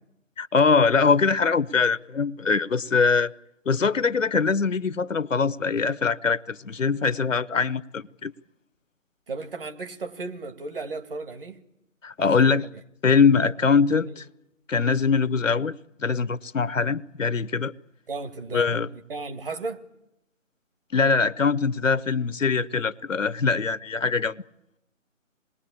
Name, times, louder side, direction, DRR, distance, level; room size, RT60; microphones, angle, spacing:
voice 1, 0.4-3.3 3.7-8.3 12.0-12.7 13.0-14.2 14.7-15.7 16.0-17.7 18.5-18.9 20.9-24.4, left 5 dB, 70° left, 0.9 m, -22 dB
voice 2, 9.3-11.6 12.2-12.7 14.1-14.2 18.1-19.8, right 3 dB, 45° right, 2.1 m, -35 dB
27.0 x 20.5 x 8.7 m
figure-of-eight pair, 155°, 40 cm